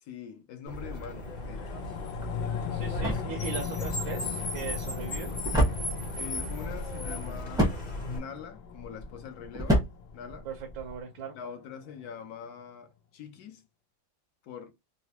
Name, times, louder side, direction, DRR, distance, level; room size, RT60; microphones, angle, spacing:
voice 1, 0.0-1.7 6.2-7.8 8.1-10.5 11.3-13.6 14.4-14.7, left 7 dB, 65° left, 1.0 m, -44 dB
Car, 0.7-8.2, left 1 dB, 35° left, 0.7 m, -36 dB
sound 1, 1.1-11.7 12.0-12.1, left 9 dB, 90° left, 1.4 m, -39 dB
sound 2, 2.1-11.0, right 1 dB, 5° right, 0.5 m, -32 dB
voice 2, 2.7-5.3 10.4-11.3, right 6 dB, 80° right, 1.5 m, -39 dB
4.0 x 2.2 x 2.8 m
omnidirectional pair, 2.1 m